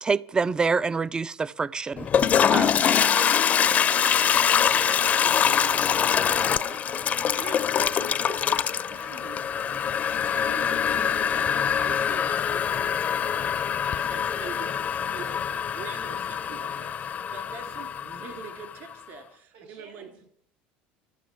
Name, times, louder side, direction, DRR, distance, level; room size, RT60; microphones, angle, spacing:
voice 1, 0.0-2.7, right 4 dB, 20° right, 0.4 m, -27 dB
Toilet flush, 2.0-18.7, left 8 dB, 40° left, 0.6 m, -24 dB
voice 2, 4.5-6.8 7.3-15.4 15.7-20.1, right 6 dB, 60° right, 3.3 m, -44 dB
voice 3, 5.6-6.5 6.8-7.7 10.8-11.1 19.5-20.3, right 5 dB, 90° right, 6.3 m, -50 dB
12.0 x 6.2 x 9.3 m
supercardioid pair, 100°, 4 cm